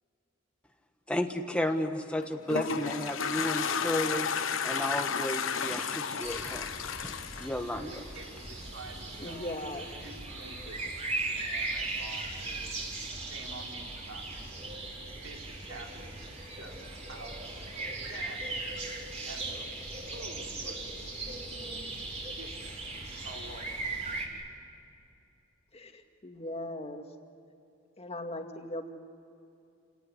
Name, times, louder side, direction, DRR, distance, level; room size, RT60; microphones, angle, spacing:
voice 1, 1.1-4.3 4.6-6.7 7.0-7.9, left 1 dB, 5° left, 4 dB, 1.3 m, -33 dB
Toilet flush, 2.1-8.5, left 6 dB, 80° left, 1.2 m, -32 dB
sound 1, 6.2-24.3, right 2 dB, 35° right, 4.3 m, -38 dB
voice 2, 7.9-9.6 10.0-10.8 11.3-12.8 13.2-14.8 15.2-16.8 17.1-17.7 18.1-18.7 19.3-19.7 20.1-20.9 21.1-22.8 23.2-23.7, right 2 dB, 80° right, 0 dB, 4.3 m, -48 dB
voice 3, 9.2-9.9 25.7-27.0 28.0-28.9, left 1 dB, 30° left, 4 dB, 2.1 m, -39 dB
29.5 x 18.5 x 9.9 m, 2.7 s
head